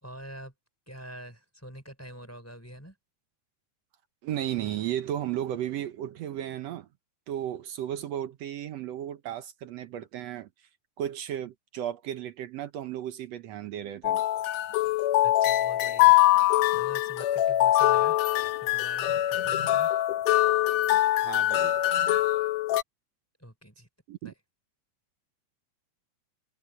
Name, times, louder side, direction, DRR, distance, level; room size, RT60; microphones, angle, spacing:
voice 1, 0.0-0.5 0.9-3.0 15.2-16.2 16.7-18.2 18.6-19.9 23.4-23.9 24.2-24.4, equal, 5° left, 4.1 m, -45 dB
voice 2, 4.2-6.9 7.3-10.5 11.0-14.2 21.2-21.8 24.1-24.3, right 11 dB, 70° right, 1.9 m, -34 dB
sound 1, 14.0-22.8, left 15 dB, 75° left, 1.9 m, -23 dB
omnidirectional pair, 3.4 m